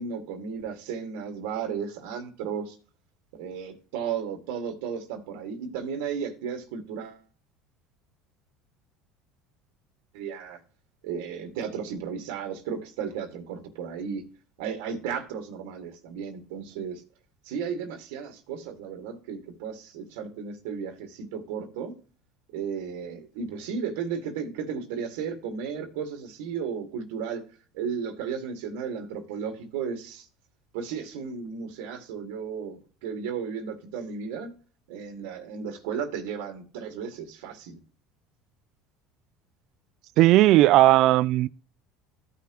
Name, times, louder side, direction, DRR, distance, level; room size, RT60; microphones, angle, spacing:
voice 1, 0.0-2.8 3.3-7.2 10.1-10.6 11.0-14.2 14.6-17.0 17.4-21.9 22.5-27.4 27.7-30.3 30.7-34.5 34.9-37.8, right 6 dB, 85° right, 1.9 m, -34 dB
voice 2, 40.2-41.5, right 16 dB, 60° right, 0.4 m, -17 dB
14.0 x 5.8 x 3.0 m
supercardioid pair, 115°, 0 cm